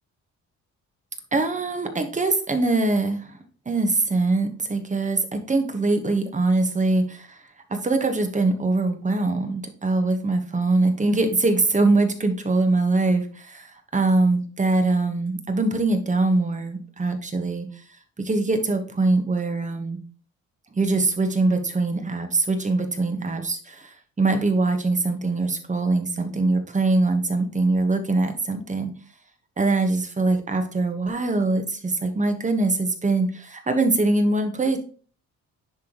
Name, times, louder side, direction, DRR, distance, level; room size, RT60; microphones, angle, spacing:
voice 1, 1.3-3.3 3.6-7.4 7.7-17.7 18.2-20.0 20.7-28.9 29.6-34.8, right 2 dB, 25° right, 6 dB, 1.3 m, -23 dB
10.5 x 3.5 x 3.0 m, 0.41 s
cardioid pair, 90°, 30 cm